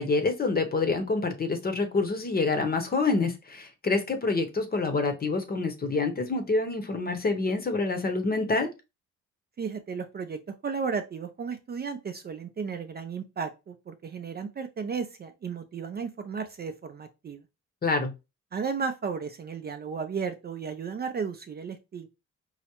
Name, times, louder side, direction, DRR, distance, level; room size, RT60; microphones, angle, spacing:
voice 1, 0.0-8.7 17.8-18.1, left 3 dB, 30° left, 7 dB, 0.8 m, -27 dB
voice 2, 9.6-17.4 18.5-22.1, right 5 dB, 35° right, 7 dB, 0.4 m, -34 dB
4.6 x 2.0 x 2.9 m, 0.26 s
cardioid pair, 90°, 30 cm